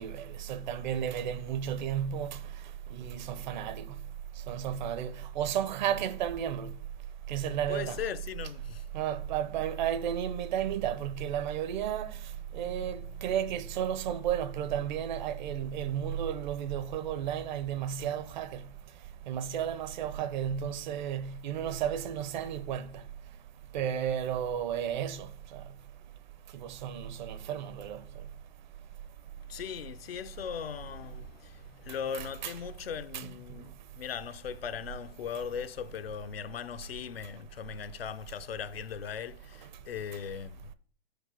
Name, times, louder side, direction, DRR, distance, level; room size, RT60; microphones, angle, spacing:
voice 1, 0.0-2.4 2.9-3.9 4.5-6.7 7.3-8.0 8.9-12.1 12.5-18.6 19.3-22.9 23.7-25.6 26.5-28.0 32.4-32.5 33.1-33.3, right 9 dB, 50° right, 0.8 m, -33 dB
voice 2, 7.7-8.9 12.3-13.2 13.5-13.8 29.5-40.7, left 8 dB, 75° left, 0.7 m, -39 dB
6.6 x 5.2 x 5.9 m
hypercardioid pair, 125°, 30 cm